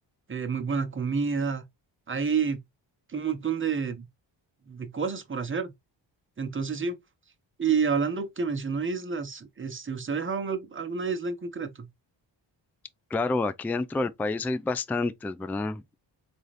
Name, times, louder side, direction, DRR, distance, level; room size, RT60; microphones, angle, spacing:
voice 1, 0.3-1.6 2.1-2.6 3.1-4.1 4.7-5.7 6.4-7.0 7.6-11.9, right 5 dB, 25° right, 1.0 m, -29 dB
voice 2, 13.1-15.9, left 3 dB, 5° left, 0.3 m, -29 dB
3.9 x 2.6 x 3.1 m
cardioid pair, 80°, 45 cm